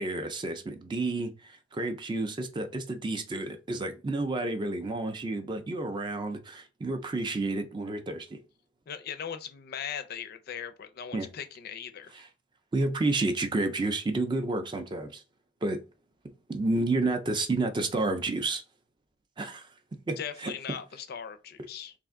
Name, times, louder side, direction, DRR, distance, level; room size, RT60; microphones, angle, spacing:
voice 1, 0.0-8.4 11.1-11.3 12.1-12.3 12.7-15.2 15.6-15.8 16.5-18.6 19.4-19.7 20.1-20.5, right 2 dB, 25° right, 0.4 m, -30 dB
voice 2, 8.9-12.2 20.2-21.9, left 8 dB, 55° left, 0.4 m, -39 dB
3.4 x 2.5 x 3.5 m
head